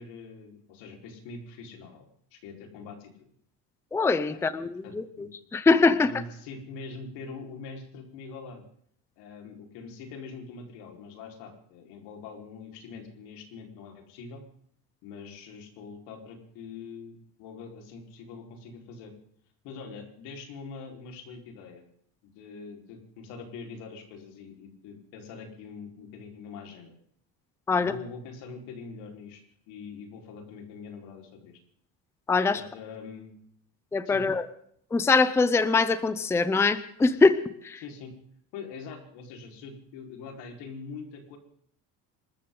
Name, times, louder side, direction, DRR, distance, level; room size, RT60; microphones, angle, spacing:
voice 1, 0.0-2.0 2.3-3.3 4.3-4.5 4.8-5.3 5.7-8.6 9.2-14.4 15.0-19.1 19.6-21.8 22.2-27.0 27.7-31.6 32.5-33.4 34.0-34.2 37.8-38.1 38.5-41.4, left 4 dB, 90° left, 3 dB, 4.7 m, -43 dB
voice 2, 3.9-6.1 27.7-27.9 32.3-32.6 33.9-34.5 34.9-37.8, left 4 dB, 5° left, 14 dB, 0.6 m, -23 dB
27.0 x 13.5 x 3.9 m, 0.67 s
cardioid pair, 175°, 40 cm